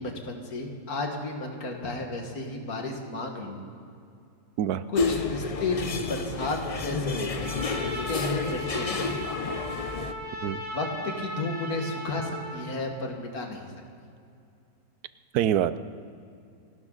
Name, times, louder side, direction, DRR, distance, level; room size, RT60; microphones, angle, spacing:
voice 1, 0.0-3.6 4.9-9.2 10.7-13.7, left 2 dB, 70° left, 2 dB, 2.3 m, -33 dB
sound 1, 5.0-10.1, left 4 dB, 40° left, 0.5 m, -30 dB
Trumpet, 7.3-12.6, equal, 10° right, 4.1 m, -37 dB
voice 2, 15.3-15.8, right 10 dB, 80° right, 14 dB, 1.1 m, -25 dB
29.0 x 12.5 x 4.0 m, 2.4 s
omnidirectional pair, 1.6 m